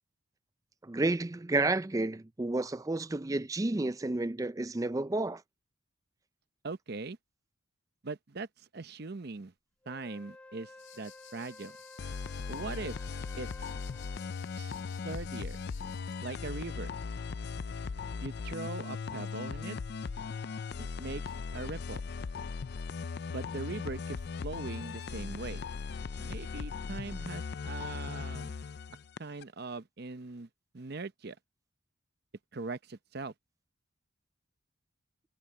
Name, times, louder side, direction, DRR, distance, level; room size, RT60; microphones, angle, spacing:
voice 1, 0.8-5.4, right 2 dB, 15° right, 0.4 m, -31 dB
voice 2, 6.6-7.2 8.0-9.5 9.9-11.8 12.5-13.0 13.4-13.7 14.6-14.8 15.0-15.6 16.2-16.9 18.2-19.8 20.8-21.2 21.5-22.0 23.3-25.7 26.2-28.5 29.2-30.5 30.7-31.4 32.5-33.3, right 3 dB, 50° right, 0.7 m, -41 dB
Wind instrument woodwind instrument, 9.8-14.6, left 2 dB, 5° left, 2.7 m, -53 dB
sound 1, 10.8-16.4, left 13 dB, 80° left, 5.1 m, -57 dB
sound 2, 12.0-29.4, left 5 dB, 50° left, 0.4 m, -38 dB
head